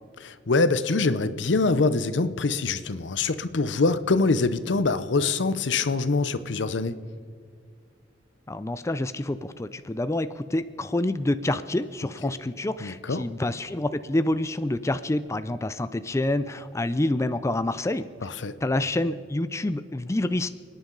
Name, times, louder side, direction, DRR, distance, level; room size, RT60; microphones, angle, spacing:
voice 1, 0.2-6.9 12.8-13.2 18.2-18.6, left 3 dB, 75° left, 13 dB, 0.7 m, -24 dB
voice 2, 8.5-18.1 18.6-20.5, left 1 dB, 15° left, 12 dB, 0.4 m, -27 dB
30.0 x 10.0 x 3.9 m, 2.2 s
head